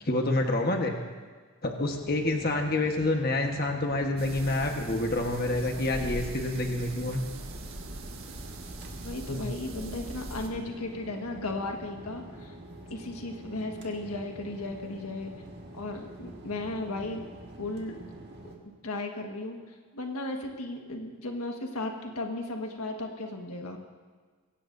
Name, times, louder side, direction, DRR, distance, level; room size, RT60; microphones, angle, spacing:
voice 1, 0.0-0.9 1.6-7.2 9.3-9.4, left 2 dB, 45° left, 3 dB, 1.2 m, -28 dB
sound 1, 1.8-18.6, right 1 dB, 45° right, 1.8 m, -46 dB
sound 2, 4.2-10.5, right 2 dB, 65° right, 1.5 m, -41 dB
voice 2, 9.0-12.5 12.9-15.3 15.7-17.3 17.6-18.0 18.4-23.8, left 2 dB, 85° left, 2 dB, 1.5 m, -35 dB
22.5 x 17.5 x 2.7 m, 1.5 s
head